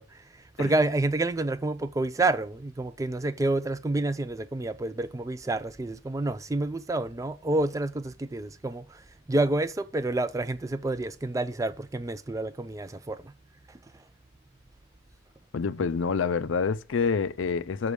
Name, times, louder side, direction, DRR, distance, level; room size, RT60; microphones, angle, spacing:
voice 1, 0.0-13.3 13.7-13.8, right 2 dB, 15° right, 0.3 m, -29 dB
voice 2, 15.5-17.9, left 5 dB, 70° left, 0.4 m, -27 dB
6.1 x 4.8 x 6.8 m
head